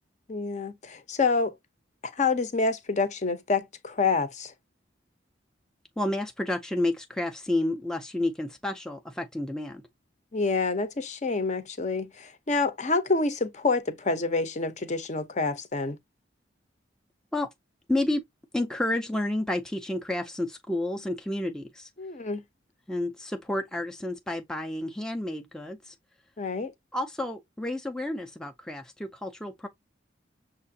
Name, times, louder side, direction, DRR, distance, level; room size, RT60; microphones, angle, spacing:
voice 1, 0.3-1.5 2.0-4.5 10.3-16.0 22.0-22.4 26.4-26.7, left 4 dB, 40° left, 0.7 m, -27 dB
voice 2, 6.0-9.8 17.3-17.5 17.9-18.2 18.5-21.9 22.9-25.9 26.9-29.7, left 1 dB, 5° left, 0.4 m, -30 dB
6.5 x 2.5 x 2.7 m
head